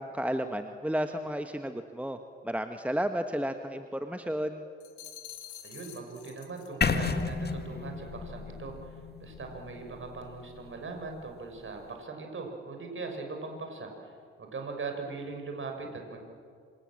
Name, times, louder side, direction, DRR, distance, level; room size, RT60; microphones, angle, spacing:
voice 1, 0.0-2.2 2.4-4.7, equal, 5° right, 7 dB, 1.5 m, -32 dB
sound 1, 4.8-6.7 7.0-7.3, left 11 dB, 65° left, 3.1 m, -47 dB
voice 2, 5.6-14.1 14.4-16.2, right 3 dB, 40° right, 3 dB, 6.3 m, -40 dB
sound 2, 6.8-10.8, left 5 dB, 30° left, 2.0 m, -32 dB
27.0 x 25.5 x 7.6 m, 2.2 s
figure-of-eight pair, 45°, 31 cm